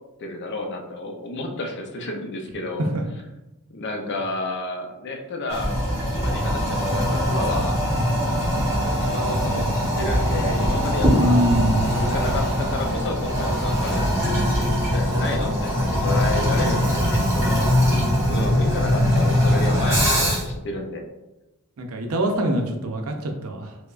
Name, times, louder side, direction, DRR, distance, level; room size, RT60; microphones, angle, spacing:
voice 1, 0.2-2.9 3.7-5.8 6.1-7.8 8.8-11.5 11.9-14.0 14.6-17.7 18.3-21.0, left 2 dB, 50° left, 3 dB, 0.5 m, -30 dB
Toilet flush, 5.5-20.6, equal, 15° right, 0.8 m, -22 dB
voice 2, 11.2-11.9 21.8-23.8, right 1 dB, 65° right, 3 dB, 0.5 m, -23 dB
4.5 x 2.1 x 2.4 m, 0.98 s
head